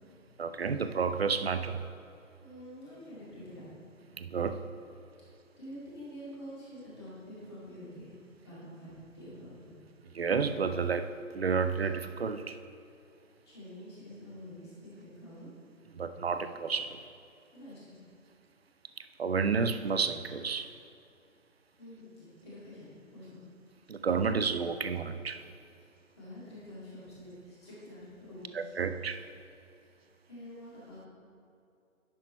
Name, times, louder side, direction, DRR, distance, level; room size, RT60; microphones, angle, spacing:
voice 1, 0.4-1.8 4.1-4.6 10.1-12.6 15.9-17.0 19.2-20.7 23.9-25.4 28.5-29.2, right 5 dB, 50° right, 10 dB, 0.5 m, -31 dB
voice 2, 2.4-3.7 5.6-8.1 8.4-9.5 13.4-15.5 17.5-18.0 21.8-23.4 26.2-28.6 30.3-31.1, equal, 20° left, -8 dB, 2.2 m, -47 dB
10.5 x 6.4 x 4.3 m, 2.6 s
hypercardioid pair, 170°, 41 cm